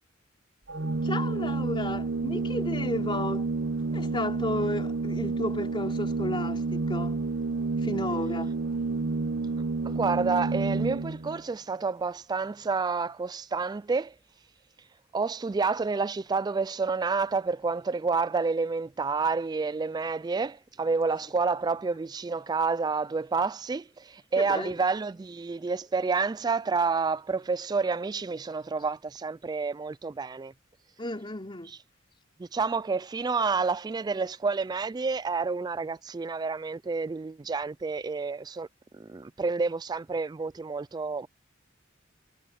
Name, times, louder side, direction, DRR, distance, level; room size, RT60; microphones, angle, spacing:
Organ, 0.7-11.4, right 3 dB, 60° right, 0.9 m, -30 dB
voice 1, 1.0-3.5 3.9-7.2 7.8-8.6 24.4-24.7 31.0-31.7, left 1 dB, 25° left, 3.3 m, -33 dB
voice 2, 9.8-14.1 15.1-30.5 31.7-31.8 32.4-38.7 38.9-41.3, right 4 dB, 20° right, 0.3 m, -29 dB
head